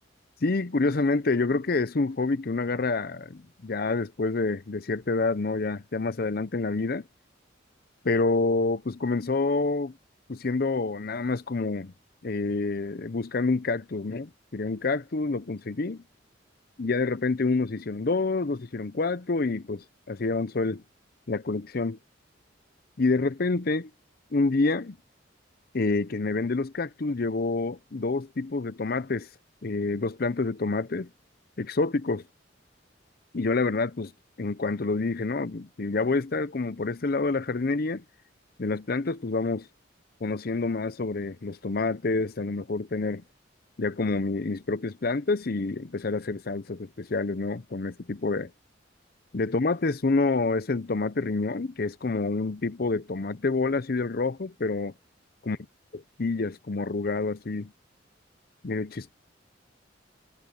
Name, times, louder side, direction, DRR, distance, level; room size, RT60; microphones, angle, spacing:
voice 1, 0.4-7.1 8.0-9.9 10.3-11.9 12.2-16.0 16.8-20.8 21.3-22.0 23.0-23.9 24.3-25.0 25.7-29.3 29.6-31.1 31.6-32.2 33.3-34.1 34.4-38.0 38.6-39.7 40.2-43.2 43.8-48.5 49.3-54.9 55.5-55.6 56.2-57.7 58.6-59.1, left 3 dB, 50° left, 0.7 m, -27 dB
head